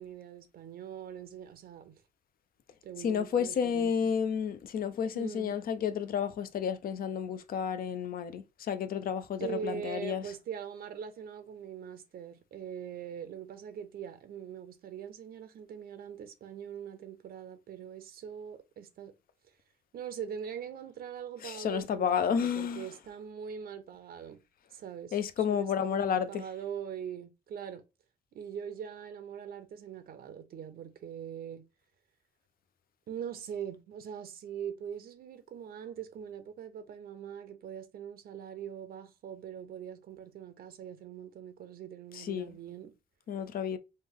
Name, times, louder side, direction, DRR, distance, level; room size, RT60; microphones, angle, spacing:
voice 1, 0.0-1.9 2.8-4.1 5.1-5.6 9.4-19.1 19.9-24.4 24.7-27.8 28.3-31.6 33.1-42.9, right 8 dB, 65° right, 0.5 m, -42 dB
voice 2, 3.0-10.2 21.4-22.9 25.1-26.4 42.1-42.5 43.3-43.8, left 7 dB, 60° left, 0.5 m, -31 dB
3.2 x 2.1 x 3.6 m
cardioid pair, 75°, 17 cm